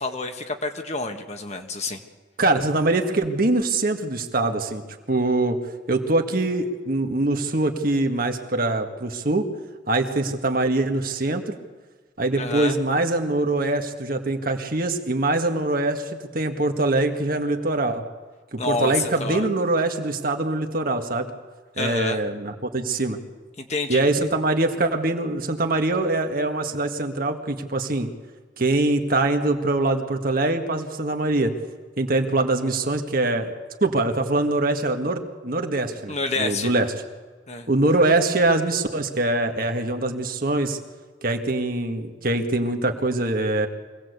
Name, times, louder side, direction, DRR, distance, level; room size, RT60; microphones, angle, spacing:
voice 1, 0.0-2.0 12.4-12.8 18.6-19.5 21.8-22.2 23.6-24.0 36.1-36.7 37.5-37.7, left 3 dB, 40° left, 5 dB, 1.8 m, -28 dB
voice 2, 2.4-4.8 5.1-5.6 5.9-9.5 9.9-11.4 12.2-18.0 18.5-21.3 21.8-23.2 23.9-28.1 28.6-31.5 32.0-33.5 33.8-36.9 37.7-40.8 41.2-43.7, right 2 dB, 50° right, 5 dB, 1.9 m, -23 dB
24.5 x 18.0 x 8.2 m, 1.4 s
head